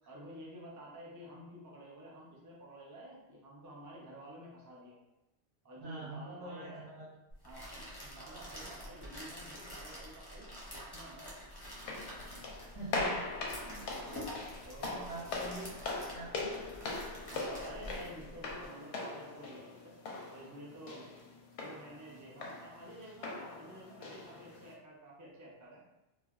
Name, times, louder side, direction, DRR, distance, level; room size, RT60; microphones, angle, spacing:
voice 1, 0.1-5.0 5.6-6.9 7.4-7.7 8.0-11.4 13.8-14.2 14.6-15.5 15.7-15.9 17.3-20.0 20.3-21.1 21.6-25.8, right 1 dB, 30° right, -4 dB, 0.3 m, -51 dB
voice 2, 5.8-7.1 12.6-13.3 13.6-13.9 14.8-16.5, right 2 dB, 70° right, -5 dB, 1.0 m, -45 dB
sound 1, 7.3-18.7, equal, 30° left, 0.5 m, -47 dB
sound 2, 11.7-24.7, left 3 dB, 85° left, 0.9 m, -41 dB
3.2 x 2.1 x 2.3 m, 0.94 s
omnidirectional pair, 1.2 m